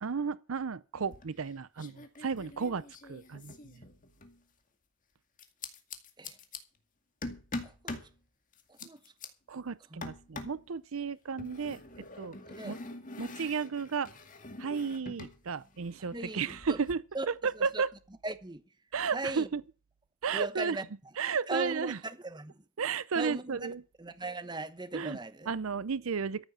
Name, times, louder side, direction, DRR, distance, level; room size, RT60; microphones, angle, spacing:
voice 1, 0.0-3.5 9.5-11.8 12.2-12.4 12.6-12.8 13.2-14.1 14.6-17.9 18.9-19.6 20.2-20.8 21.2-22.0 22.8-23.8 24.9-25.2 25.5-26.4, right 5 dB, 75° right, 0.6 m, -33 dB
sound 1, 1.0-1.5 1.8-4.4 5.4-6.6 7.2-8.1 8.5-9.3 10.0-10.6 11.4-15.4 15.6-16.9, left 2 dB, 40° left, 2.1 m, -44 dB
voice 2, 7.6-8.0 8.7-9.0 9.9-10.1 12.5-12.7 16.1-16.8 17.1-17.3 17.5-17.7 18.2-18.6 19.1-19.5 20.3-20.8 21.5-22.6 23.1-23.7 24.0-25.5, right 2 dB, 20° right, 1.0 m, -38 dB
14.0 x 8.0 x 7.2 m
head